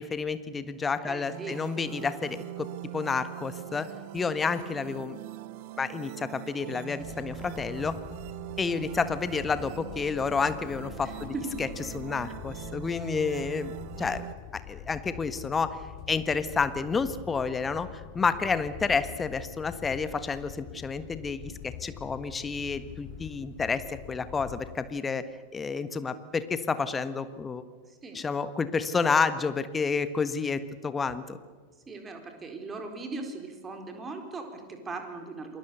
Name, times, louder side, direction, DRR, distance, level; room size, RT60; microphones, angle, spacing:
voice 1, 0.0-3.9 4.1-5.2 5.8-8.0 8.6-11.3 11.6-11.7 11.9-14.2 14.5-15.8 16.1-17.9 18.1-25.2 25.5-27.6 28.1-31.4, left 5 dB, 15° left, 13 dB, 1.5 m, -30 dB
voice 2, 1.0-1.6 11.0-11.5 18.9-19.0 27.9-28.2 31.9-35.6, right 3 dB, 15° right, 4 dB, 4.3 m, -39 dB
sound 1, 1.3-14.3, right 14 dB, 45° right, 0.8 m, -42 dB
sound 2, 7.0-24.8, left 11 dB, 35° left, 1.4 m, -45 dB
28.0 x 22.0 x 7.0 m, 1.5 s
figure-of-eight pair, 90°, 0 cm